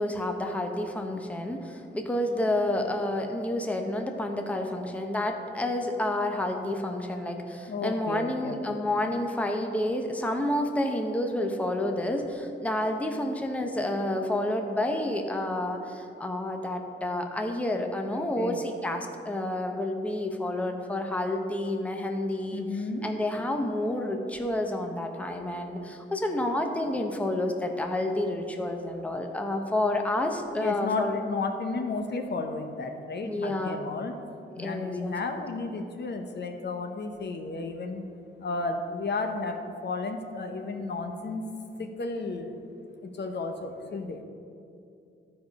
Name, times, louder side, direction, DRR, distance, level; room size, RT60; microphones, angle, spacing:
voice 1, 0.0-22.6 23.0-31.2 33.3-33.8 34.6-35.5, left 1 dB, 5° left, 3 dB, 0.7 m, -29 dB
voice 2, 7.7-8.8 18.2-18.6 22.5-23.1 30.5-34.1 34.6-38.1 38.4-41.4 41.8-42.5 43.0-44.2, left 3 dB, 55° left, 5 dB, 0.8 m, -33 dB
12.0 x 4.9 x 5.2 m, 2.6 s
cardioid pair, 105°, 21 cm